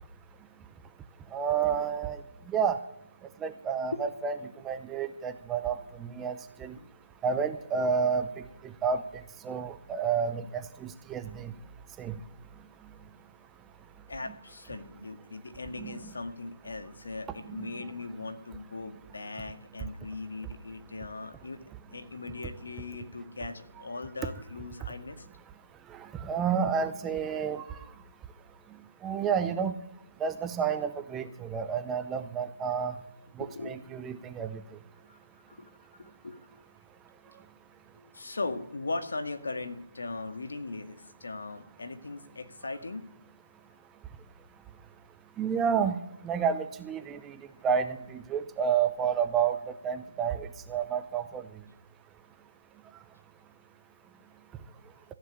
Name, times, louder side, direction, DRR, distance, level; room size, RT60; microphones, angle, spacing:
voice 1, 1.3-2.2 2.5-2.8 3.4-4.3 4.6-5.7 6.0-6.7 7.2-8.3 8.8-9.0 9.4-11.5 12.0-12.1 15.8-16.0 26.2-27.6 29.0-29.7 30.2-32.9 33.4-34.5 45.4-47.3 47.6-49.6 49.8-51.4, right 7 dB, 5° right, 9 dB, 0.5 m, -30 dB
voice 2, 14.1-21.6 21.9-25.3 33.4-34.2 35.0-35.2 35.5-35.7 36.0-36.6 37.3-37.4 38.0-43.0, left 3 dB, 70° left, 7 dB, 2.0 m, -39 dB
14.0 x 7.5 x 8.6 m, 0.86 s
hypercardioid pair, 175°, 0 cm